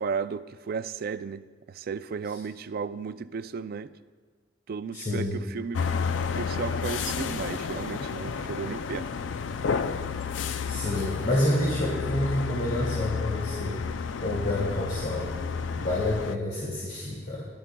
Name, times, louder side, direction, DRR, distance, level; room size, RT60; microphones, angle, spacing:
voice 1, 0.0-3.9 4.7-5.9 6.3-9.1, right 5 dB, 55° right, 0.4 m, -34 dB
voice 2, 4.9-5.4 10.7-13.8 14.2-15.3 15.7-17.5, left 1 dB, 55° left, 2.2 m, -28 dB
sound 1, 5.7-16.4, left 5 dB, 80° left, 0.4 m, -31 dB
17.0 x 12.0 x 2.2 m
head